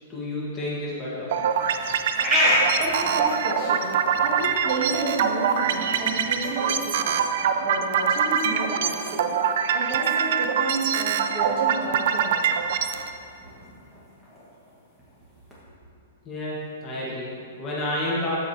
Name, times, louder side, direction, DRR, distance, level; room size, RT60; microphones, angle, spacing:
voice 1, 0.1-1.3 16.2-18.3, left 1 dB, 15° left, -7 dB, 1.2 m, -30 dB
sound 1, 1.3-13.1, right 7 dB, 50° right, 0.4 m, -24 dB
sound 2, 1.5-15.6, equal, 5° right, 1.3 m, -32 dB
voice 2, 2.8-3.9 4.2-7.2 7.6-9.3 9.7-12.4, right 2 dB, 35° right, -5 dB, 1.7 m, -31 dB
13.5 x 4.9 x 2.7 m, 2.5 s
hypercardioid pair, 170°, 0 cm